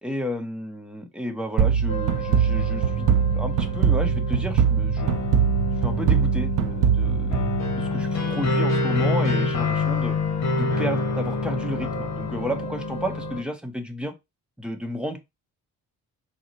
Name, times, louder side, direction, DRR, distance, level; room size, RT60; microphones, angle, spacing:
voice 1, 0.0-5.1 5.8-7.4 7.8-10.2 10.6-14.1 14.6-15.2, equal, 5° right, 0.8 m, -32 dB
sound 1, 1.6-8.2, right 7 dB, 80° right, 0.5 m, -22 dB
sound 2, 1.9-13.4, left 3 dB, 60° left, 1.0 m, -27 dB
4.4 x 2.1 x 3.8 m
cardioid pair, 115°, 31 cm